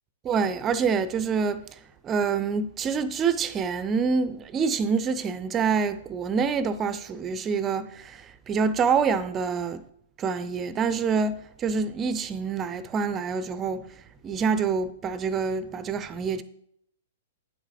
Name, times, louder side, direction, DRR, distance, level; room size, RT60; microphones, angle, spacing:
voice 1, 0.2-9.8 10.2-13.9 14.2-16.4, right 5 dB, 20° right, 0.6 m, -26 dB
9.2 x 7.3 x 3.3 m
figure-of-eight pair, 110°, 0 cm